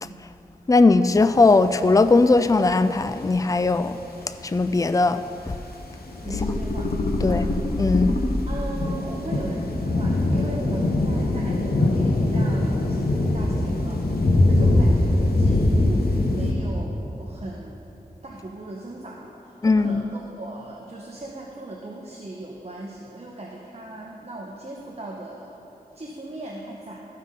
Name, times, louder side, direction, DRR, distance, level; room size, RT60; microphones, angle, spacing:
voice 1, 0.7-4.0 4.4-5.2 7.2-7.4 7.8-8.1 19.6-20.0, left 3 dB, 20° left, 11 dB, 0.4 m, -18 dB
sound 1, 1.1-3.4 3.8-3.9 4.3-4.7 5.0-16.5, left 2 dB, 80° left, 0.9 m, -23 dB
voice 2, 6.2-7.5 8.2-17.9 18.2-25.5 25.9-27.0, right 2 dB, 40° right, -2 dB, 1.0 m, -38 dB
sound 2, 6.3-8.7 9.7-10.6, left 2 dB, 50° left, 0.8 m, -25 dB
14.5 x 5.6 x 3.8 m, 2.9 s
cardioid pair, 40°, 16 cm